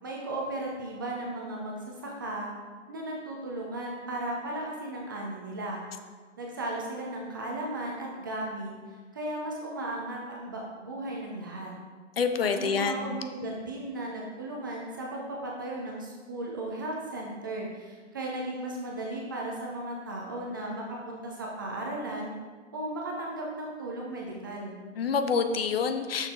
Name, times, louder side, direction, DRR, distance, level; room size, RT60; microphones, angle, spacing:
voice 1, 0.0-2.5 2.9-5.8 6.4-11.7 12.6-22.3 22.7-24.8, right 1 dB, 15° right, -2 dB, 0.5 m, -36 dB
voice 2, 12.2-13.2 25.0-26.3, left 5 dB, 50° left, 8 dB, 0.6 m, -27 dB
6.5 x 6.1 x 3.6 m, 1.5 s
hypercardioid pair, 145°, 38 cm